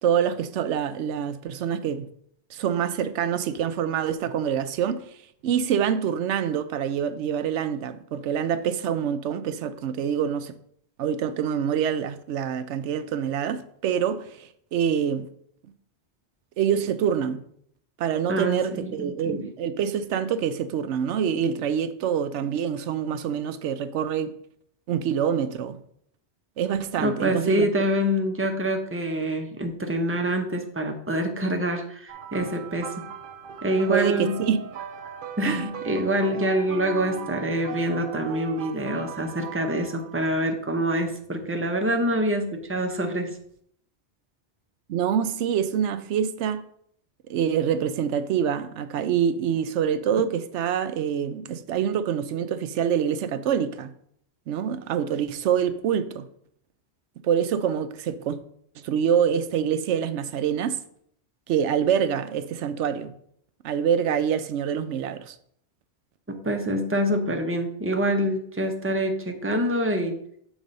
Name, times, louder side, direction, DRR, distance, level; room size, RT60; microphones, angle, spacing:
voice 1, 0.0-2.1 2.5-5.0 5.4-10.6 11.0-15.3 16.6-17.4 18.0-24.3 24.9-25.8 26.6-27.7 33.9-34.7 35.4-35.7 44.9-46.6 47.3-53.9 54.5-56.2 57.2-58.4 58.8-60.8 61.5-63.1 63.6-65.4, right 8 dB, 85° right, 0.9 m, -26 dB
voice 2, 18.3-19.4 27.0-32.9 33.6-34.4 35.4-43.3 66.4-70.2, equal, 15° right, 0.6 m, -26 dB
sound 1, 32.1-40.3 41.2-41.4 43.3-43.4, right 8 dB, 55° right, 0.8 m, -39 dB
7.3 x 4.0 x 5.2 m
omnidirectional pair, 1.2 m